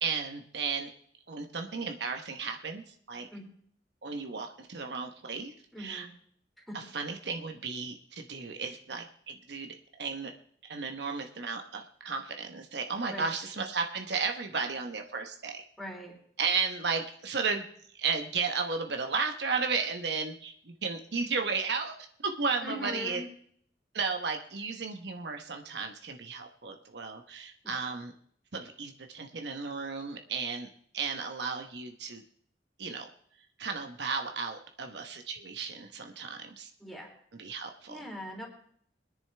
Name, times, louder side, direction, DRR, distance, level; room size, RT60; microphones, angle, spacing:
voice 1, 0.0-0.9 1.3-3.3 4.0-6.1 6.7-10.3 10.6-15.6 16.4-17.7 17.9-23.2 23.9-28.1 28.5-30.7 30.9-32.2 32.8-33.1 33.6-36.7 37.3-38.0, right 5 dB, 75° right, 4 dB, 1.0 m, -34 dB
voice 2, 5.7-6.1 6.7-6.8 13.1-13.3 15.8-16.1 22.6-23.2 36.8-37.1 37.9-38.5, left 1 dB, ahead, -1 dB, 3.2 m, -40 dB
22.0 x 10.0 x 3.4 m, 0.64 s
head